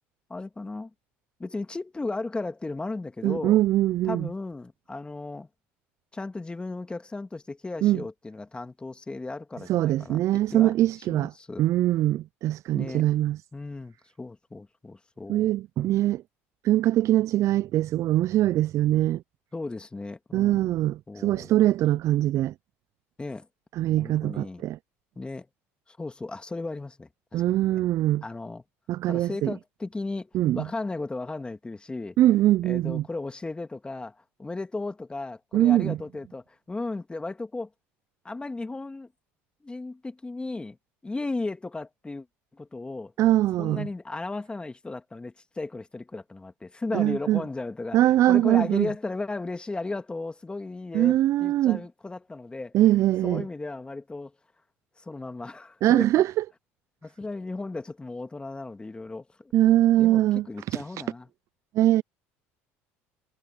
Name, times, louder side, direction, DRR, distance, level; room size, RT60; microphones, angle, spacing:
voice 1, 0.3-0.9 1.4-3.6 4.0-5.5 6.1-10.2 10.5-10.7 11.1-11.7 12.7-13.1 13.5-15.5 19.5-20.8 21.1-21.5 23.2-23.5 24.0-24.6 25.2-25.5 25.9-27.8 28.2-28.6 29.1-32.2 32.6-37.7 38.2-39.1 39.6-40.8 41.0-42.3 42.5-43.1 43.6-48.0 48.3-52.8 53.2-54.3 55.0-56.1 57.0-59.5 60.0-61.3, left 3 dB, 15° left, 2.3 m, -35 dB
voice 2, 3.2-4.3 7.8-8.0 9.7-11.3 11.6-13.4 15.3-16.2 16.6-19.2 20.3-22.5 23.7-24.8 27.3-28.2 28.9-29.5 30.3-30.7 32.2-33.0 35.5-36.0 43.2-43.9 46.9-47.4 47.9-48.9 50.9-51.8 52.7-53.4 55.8-56.4 59.5-60.5 60.7-60.8 61.7-62.0, right 14 dB, 55° right, 0.4 m, -22 dB
supercardioid pair, 85°, 6 cm